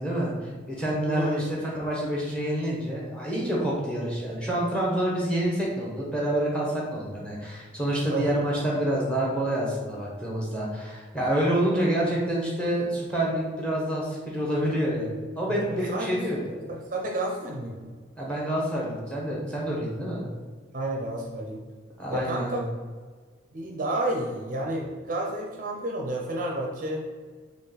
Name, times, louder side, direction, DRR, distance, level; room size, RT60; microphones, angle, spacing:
voice 1, 0.0-16.4 18.2-20.2 22.0-22.6, right 1 dB, 5° left, -4 dB, 0.9 m, -27 dB
voice 2, 1.1-1.4 8.1-8.3 15.5-16.1 16.7-17.9 20.7-21.6 22.1-22.6 23.5-27.1, right 1 dB, 40° right, -1 dB, 0.5 m, -31 dB
4.2 x 2.9 x 3.9 m, 1.5 s
head